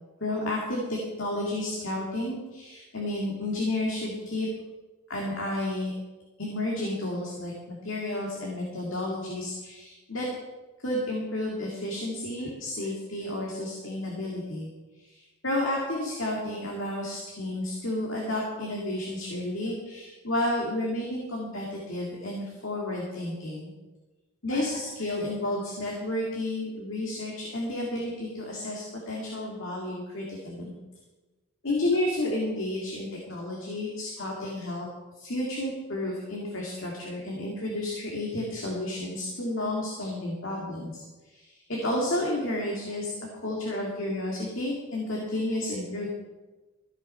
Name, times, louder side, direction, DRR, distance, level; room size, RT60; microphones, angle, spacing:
voice 1, 0.2-4.5 5.1-5.9 6.4-10.3 10.8-14.7 15.4-23.7 24.4-30.7 31.6-34.9 35.2-41.0 41.3-41.4 41.7-43.2 43.4-46.1, left 1 dB, 60° left, -2 dB, 2.4 m, -31 dB
14.5 x 8.7 x 5.8 m, 1.2 s
head